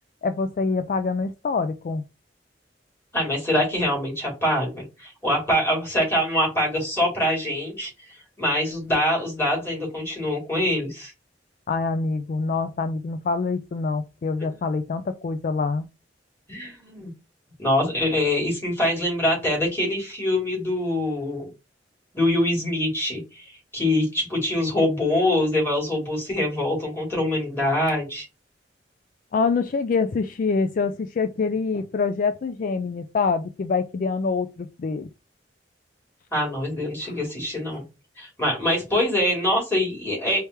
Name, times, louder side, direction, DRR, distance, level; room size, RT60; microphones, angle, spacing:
voice 1, 0.2-2.0 11.7-15.9 29.3-35.1 37.0-37.1, left 4 dB, 50° left, 9 dB, 0.3 m, -25 dB
voice 2, 3.1-7.9 8.4-11.1 16.5-17.1 17.6-21.5 22.1-23.5 23.7-28.2 36.3-37.8 38.2-40.4, left 1 dB, 15° left, -4 dB, 2.9 m, -24 dB
4.7 x 3.3 x 3.0 m, 0.27 s
head